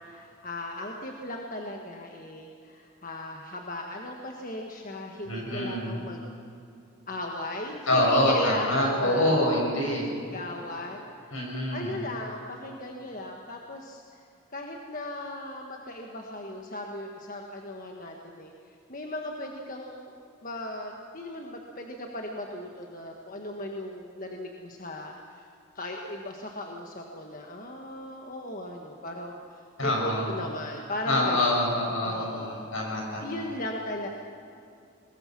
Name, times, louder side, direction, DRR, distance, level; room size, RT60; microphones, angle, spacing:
voice 1, 0.0-6.3 7.1-9.3 10.3-18.5 18.9-20.1 20.4-25.5 25.7-31.7 32.0-32.7 33.2-34.1, left 1 dB, 40° left, 1 dB, 1.5 m, -37 dB
voice 2, 5.3-6.0 7.9-10.1 11.3-12.0 29.8-30.3 31.1-33.4, left 1 dB, 75° left, -1 dB, 6.5 m, -26 dB
22.5 x 20.5 x 6.1 m, 2.6 s
head